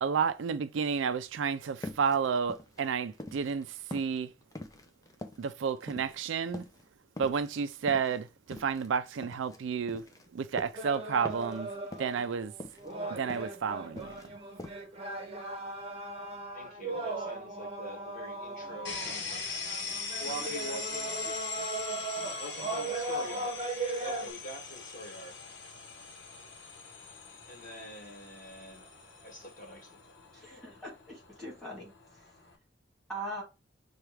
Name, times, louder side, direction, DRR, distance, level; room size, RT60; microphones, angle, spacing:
voice 1, 0.0-4.3 5.4-6.6 7.2-10.1 10.3-11.7 12.0-12.5 13.1-14.2, right 6 dB, 80° right, 0.4 m, -31 dB
sound 1, 1.8-3.6 3.9-6.3 6.5-6.9 7.2-9.6 9.9-11.0 11.2-11.6 11.9-12.3 12.6-13.6 13.8-14.3 14.6-14.8, left 1 dB, 20° left, 0.5 m, -45 dB
sound 2, 10.7-24.3, right 2 dB, 30° right, 0.8 m, -38 dB
voice 2, 16.5-21.3 22.4-23.7 24.0-25.4 27.4-28.9 29.2-30.0, equal, 45° left, 1.6 m, -45 dB
sound 3, 18.8-32.5, left 4 dB, 65° left, 1.2 m, -42 dB
voice 3, 30.3-32.3 33.1-33.4, right 1 dB, ahead, 2.3 m, -42 dB
5.7 x 2.4 x 3.2 m
head